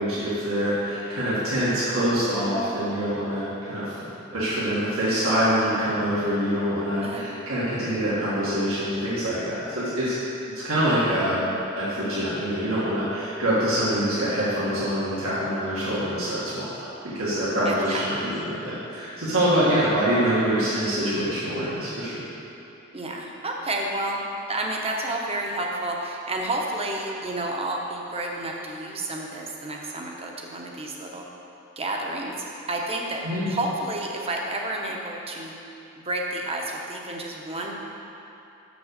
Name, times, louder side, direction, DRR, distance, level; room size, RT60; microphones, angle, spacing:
voice 1, 0.0-10.2 10.4-11.5 11.8-16.9 17.1-22.1 33.2-33.5, equal, 80° right, -10 dB, 1.9 m, -25 dB
voice 2, 17.6-18.4 20.2-20.3 22.9-24.2 24.5-31.3 31.8-33.2 33.5-35.5 36.0-37.7, right 2 dB, 30° right, 0 dB, 0.9 m, -30 dB
6.2 x 6.1 x 6.5 m, 2.8 s
head